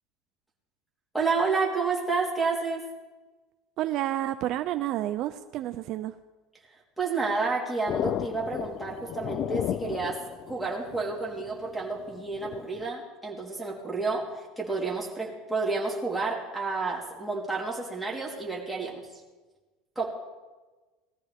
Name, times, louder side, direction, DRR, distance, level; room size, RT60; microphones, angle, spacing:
voice 1, 1.1-2.8 7.0-10.2 10.5-14.3 14.6-19.0 20.0-20.1, right 4 dB, ahead, -5 dB, 3.7 m, -30 dB
voice 2, 3.8-6.1, right 13 dB, 50° right, 10 dB, 0.5 m, -30 dB
sound 1, 7.9-12.9, left 11 dB, 40° left, 0.4 m, -34 dB
20.0 x 13.5 x 3.6 m, 1.2 s
supercardioid pair, 140°, 0 cm